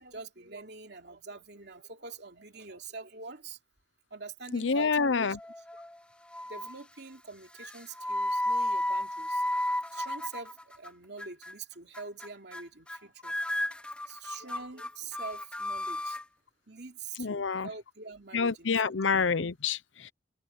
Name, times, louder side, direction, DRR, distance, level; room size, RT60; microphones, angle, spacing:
voice 1, 0.0-3.6 4.1-5.4 6.5-9.4 9.9-13.3 14.1-16.2 16.7-19.0, right 4 dB, 60° right, 3.1 m, -45 dB
voice 2, 4.5-5.4 17.2-17.7 18.3-20.1, left 5 dB, 75° left, 0.8 m, -28 dB
sound 1, 5.4-6.0 6.3-6.8 7.6-10.9 11.2-11.5 11.9-12.3 12.5-13.0 13.2-16.2, left 1 dB, 5° left, 0.7 m, -33 dB
head